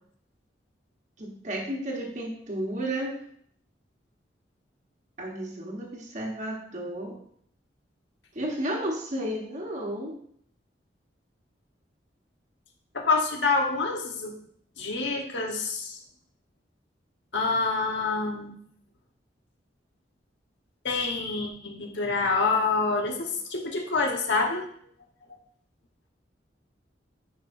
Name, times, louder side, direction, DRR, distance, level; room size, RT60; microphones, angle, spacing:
voice 1, 1.2-3.1 5.2-7.2 8.3-10.1, right 1 dB, 40° right, -1 dB, 1.2 m, -32 dB
voice 2, 12.9-14.3 14.8-16.0 17.3-18.5 20.8-24.6, left 4 dB, 80° left, 1 dB, 1.3 m, -27 dB
10.0 x 4.9 x 2.7 m, 0.63 s
head